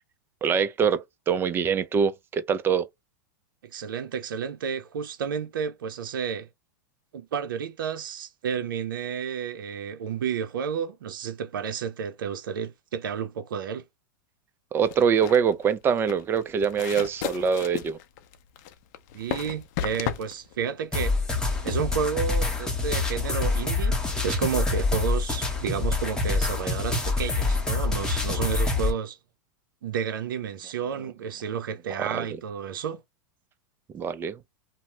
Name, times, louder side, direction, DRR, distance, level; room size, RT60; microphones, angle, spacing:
voice 1, 0.4-2.9 14.7-18.0 32.0-32.4 33.9-34.4, right 7 dB, 20° right, 0.4 m, -24 dB
voice 2, 3.6-6.5 7.1-13.8 19.1-21.2 21.6-29.2 29.8-33.0, right 7 dB, 85° right, 0.5 m, -31 dB
sound 1, 14.8-21.8, left 10 dB, 50° left, 0.5 m, -35 dB
sound 2, 20.9-28.9, left 3 dB, 5° left, 0.7 m, -26 dB
2.7 x 2.0 x 3.2 m
hypercardioid pair, 125°, 11 cm